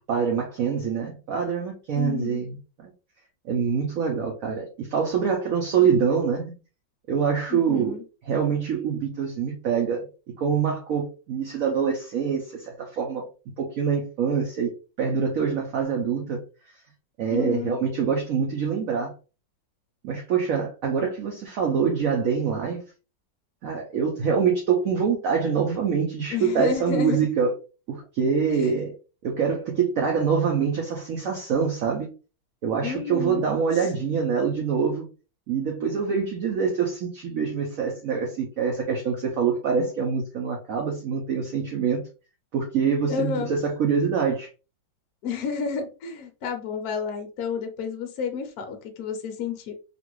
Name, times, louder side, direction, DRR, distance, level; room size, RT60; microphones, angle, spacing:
voice 1, 0.1-2.6 2.8-2.9 3.4-6.5 7.1-8.0 8.2-10.1 10.4-13.2 13.6-14.7 15.0-16.4 17.2-19.1 20.0-22.8 23.6-27.5 27.9-28.9 29.2-32.1 32.6-35.1 35.5-42.0 42.5-44.5, right 6 dB, 65° right, 0.8 m, -25 dB
voice 2, 1.9-2.4 7.5-8.0 17.3-17.8 26.3-27.2 28.5-28.7 32.8-33.5 43.1-43.5 45.2-49.7, left 6 dB, 65° left, 1.0 m, -30 dB
3.0 x 2.5 x 3.0 m
omnidirectional pair, 2.1 m